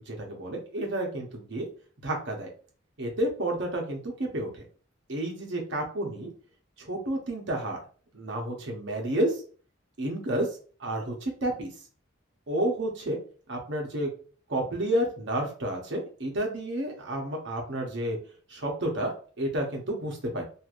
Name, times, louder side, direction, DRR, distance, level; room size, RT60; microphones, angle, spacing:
voice 1, 0.1-1.7 2.0-2.5 3.0-4.6 5.1-6.3 6.8-7.8 8.1-9.4 10.0-10.5 10.8-11.7 12.5-13.2 13.5-14.1 14.5-18.2 18.5-20.4, right 1 dB, 60° right, 1 dB, 0.9 m, -30 dB
3.2 x 2.6 x 2.5 m, 0.40 s
head